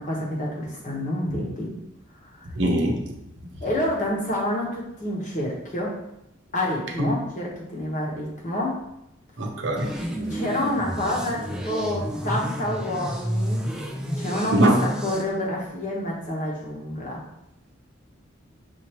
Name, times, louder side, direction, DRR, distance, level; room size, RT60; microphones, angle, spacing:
voice 1, 0.0-1.7 2.2-2.5 3.6-5.9 6.5-8.8 10.2-13.7 14.0-17.2, left 1 dB, 40° left, -3 dB, 1.1 m, -28 dB
voice 2, 2.6-3.0 7.0-7.1 9.4-9.9 14.5-14.8, right 1 dB, 65° right, 1 dB, 0.8 m, -21 dB
sound 1, 9.8-15.2, equal, 5° right, 0.3 m, -30 dB
6.5 x 2.8 x 2.9 m, 0.84 s
head